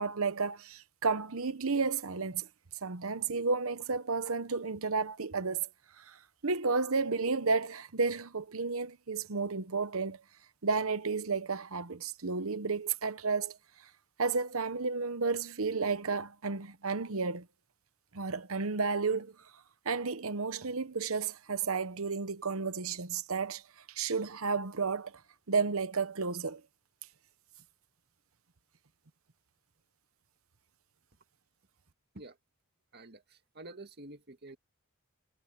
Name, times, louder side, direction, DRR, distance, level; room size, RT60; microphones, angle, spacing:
voice 1, 0.0-2.5 2.8-5.7 6.0-10.2 10.6-13.6 14.2-17.5 18.1-19.3 19.8-23.6 23.9-25.2 25.5-26.6, right 4 dB, 65° right, 1.0 m, -32 dB
voice 2, 33.6-34.6, right 2 dB, 45° right, 2.1 m, -48 dB
head